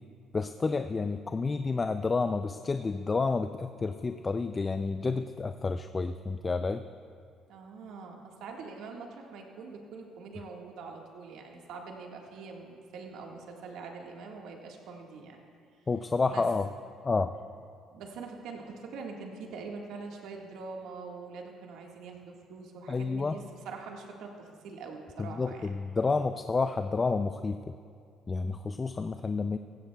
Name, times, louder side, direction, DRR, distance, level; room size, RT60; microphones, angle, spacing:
voice 1, 0.3-6.8 15.9-16.7 17.0-17.3 22.9-23.3 25.2-27.7 28.3-29.6, left 4 dB, 30° left, 9 dB, 0.4 m, -30 dB
voice 2, 7.5-15.4 16.3-16.4 17.9-25.7, right 4 dB, 80° right, 1 dB, 1.6 m, -44 dB
15.5 x 15.5 x 2.3 m, 2.4 s
cardioid pair, 95°, 0 cm